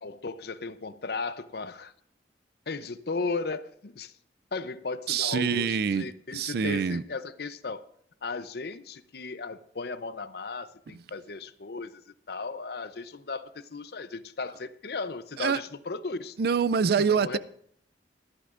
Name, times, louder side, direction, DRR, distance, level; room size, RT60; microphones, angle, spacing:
voice 1, 0.0-1.9 2.7-4.1 4.5-7.8 8.2-16.4 17.0-17.4, left 4 dB, 60° left, 12 dB, 0.7 m, -36 dB
voice 2, 5.1-6.1 6.3-7.0 15.4-15.6 16.4-17.4, right 6 dB, 60° right, 17 dB, 0.4 m, -25 dB
23.5 x 11.5 x 2.5 m, 0.67 s
head